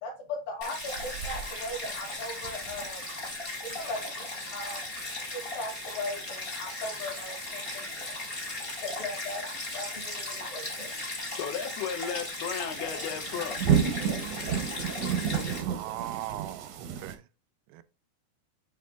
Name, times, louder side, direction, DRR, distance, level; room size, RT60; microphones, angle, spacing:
voice 1, 0.0-3.0 3.8-4.8 5.2-8.2 8.8-9.4 9.7-10.9, left 2 dB, 65° left, 3.6 m, -38 dB
Stream, 0.6-15.6, left 2 dB, 50° left, 0.6 m, -37 dB
sound 1, 0.8-17.1, right 8 dB, 70° right, 1.7 m, -35 dB
voice 2, 11.4-13.6, left 7 dB, 85° left, 2.8 m, -34 dB
voice 3, 15.5-17.2 17.7-17.8, right 15 dB, 85° right, 2.5 m, -39 dB
8.6 x 3.5 x 3.8 m
omnidirectional pair, 4.5 m